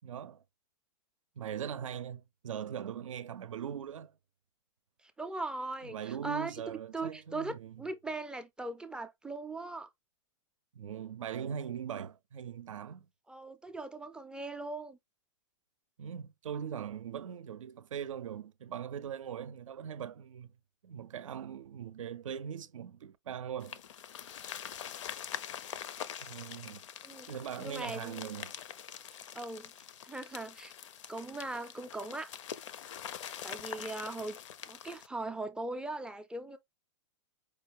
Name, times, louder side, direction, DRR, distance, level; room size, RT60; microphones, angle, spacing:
voice 1, 0.0-0.4 1.4-4.1 5.8-7.7 10.7-13.1 16.0-20.5 20.8-23.8 26.2-26.9 27.3-28.5, right 8 dB, 85° right, 0.5 m, -40 dB
voice 2, 5.0-9.9 13.3-15.0 27.0-27.3 27.6-28.3 29.3-30.7 31.1-32.3 33.4-34.4 34.7-36.6, right 2 dB, 5° right, 0.3 m, -40 dB
sound 1, 23.6-35.1, left 9 dB, 70° left, 0.6 m, -44 dB
5.0 x 2.3 x 2.9 m
hypercardioid pair, 130°, 16 cm